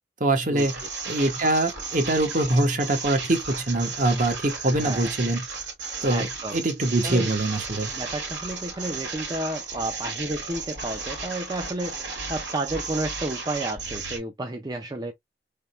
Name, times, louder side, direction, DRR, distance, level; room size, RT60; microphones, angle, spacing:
voice 1, 0.2-0.7 1.1-5.4 6.0-6.3 6.5-7.9, right 2 dB, 45° right, 1.0 m, -23 dB
sound 1, 0.6-14.2, right 4 dB, 85° right, 1.8 m, -34 dB
voice 2, 4.6-5.1 6.1-6.6 7.0-7.3 7.9-12.0 12.3-15.1, right 2 dB, 25° right, 0.5 m, -31 dB
3.5 x 2.2 x 4.2 m
head